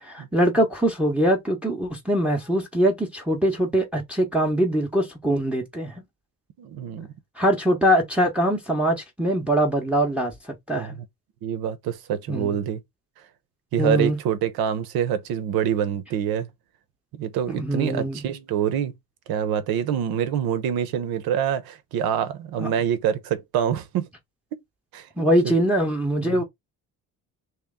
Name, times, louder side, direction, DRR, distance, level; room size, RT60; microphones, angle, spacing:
voice 1, 0.0-6.0 7.4-11.0 12.3-12.6 13.8-14.2 17.5-18.2 22.6-22.7 25.2-26.4, right 1 dB, 5° right, 0.7 m, -23 dB
voice 2, 6.6-7.1 10.8-10.9 11.4-12.8 13.7-16.5 17.1-18.9 19.3-24.0 24.9-25.1 25.4-25.6 26.2-26.4, right 9 dB, 85° right, 0.9 m, -26 dB
3.1 x 3.0 x 3.6 m
cardioid pair, 130°, 36 cm